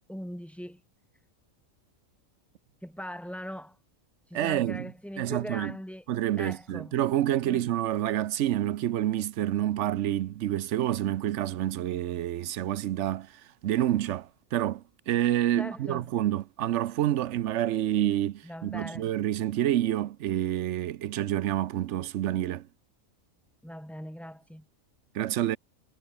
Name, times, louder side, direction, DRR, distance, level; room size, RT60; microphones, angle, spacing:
voice 1, 0.1-0.8 2.8-3.8 4.3-6.1 6.4-7.0 7.4-7.6 15.6-16.1 18.4-19.1 23.6-24.6, equal, ahead, 1.8 m, -40 dB
voice 2, 4.3-4.9 5.2-5.7 6.1-13.3 13.6-22.7 25.1-25.6, right 12 dB, 65° right, 0.8 m, -28 dB
omnidirectional pair, 1.5 m